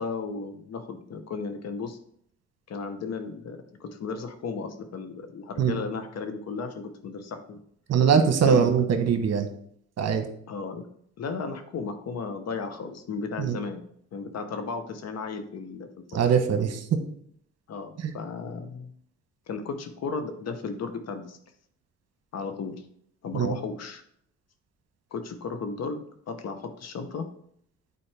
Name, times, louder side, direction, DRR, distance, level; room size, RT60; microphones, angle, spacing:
voice 1, 0.0-2.0 2.7-7.6 8.4-8.7 10.5-10.9 11.2-13.8 14.1-16.2 17.7-18.9 19.5-21.4 22.3-22.8 23.2-24.0 25.1-27.3, left 4 dB, 55° left, 8 dB, 1.0 m, -35 dB
voice 2, 7.9-9.5 10.0-10.3 13.4-13.6 16.1-16.8 18.0-18.1 23.3-23.5, right 7 dB, 60° right, 7 dB, 1.1 m, -22 dB
8.5 x 4.3 x 3.4 m, 0.66 s
cardioid pair, 90°, 30 cm